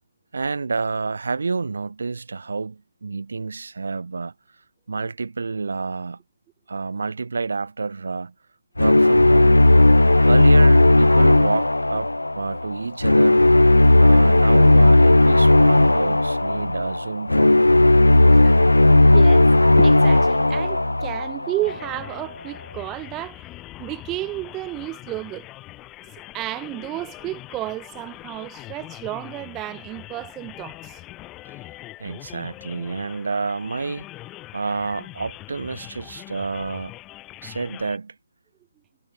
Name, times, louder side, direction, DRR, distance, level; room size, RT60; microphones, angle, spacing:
voice 1, 0.3-4.3 4.9-6.2 6.7-8.3 8.8-9.6 10.2-12.1 12.3-13.5 14.0-17.6 32.0-34.1 34.5-36.9 37.4-38.1, right 4 dB, 60° right, 6.3 m, -29 dB
sound 1, 8.8-21.9, left 2 dB, 80° left, 1.3 m, -15 dB
voice 2, 19.1-19.5 19.8-23.4 23.8-25.5 26.3-31.0, right 17 dB, 15° right, 3.4 m, -32 dB
sound 2, 21.6-38.0, left 18 dB, 15° left, 3.9 m, -42 dB
figure-of-eight pair, 145°, 0 cm